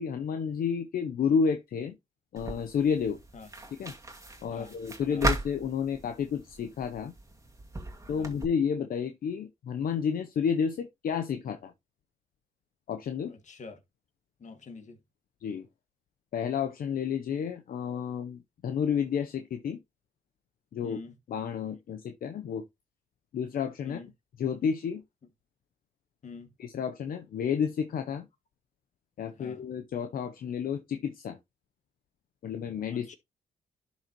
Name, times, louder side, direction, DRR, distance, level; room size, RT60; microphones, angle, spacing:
voice 1, 0.0-1.9 2.3-3.2 3.7-3.9 4.4-7.1 8.1-11.7 12.9-13.3 15.4-15.7 16.3-19.8 20.7-21.0 21.3-22.6 23.3-24.0 24.4-25.0 26.6-28.2 29.2-31.4 32.4-33.1, left 7 dB, 65° left, 0.8 m, -31 dB
sound 1, 2.4-8.4, right 2 dB, 20° right, 2.0 m, -37 dB
voice 2, 13.3-13.8 14.4-15.0 20.8-21.1 23.8-24.1 26.2-26.5 29.4-29.6 32.9-33.2, left 4 dB, 50° left, 1.8 m, -45 dB
11.5 x 4.0 x 3.0 m
cardioid pair, 75°, 16 cm